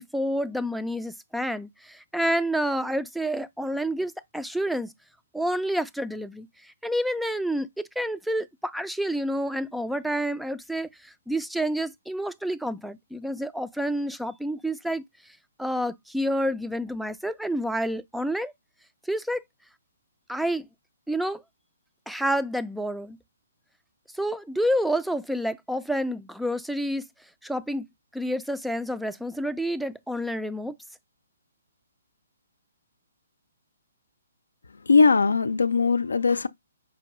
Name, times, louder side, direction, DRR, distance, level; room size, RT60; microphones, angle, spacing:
voice 1, 0.0-4.9 5.3-15.0 15.6-18.5 19.1-19.4 20.3-20.7 21.1-21.4 22.1-23.2 24.1-27.1 27.4-27.9 28.1-30.7, equal, ahead, 0.3 m, -29 dB
voice 2, 34.9-36.5, left 4 dB, 85° left, 0.4 m, -20 dB
5.4 x 2.5 x 3.0 m
hypercardioid pair, 145°, 0 cm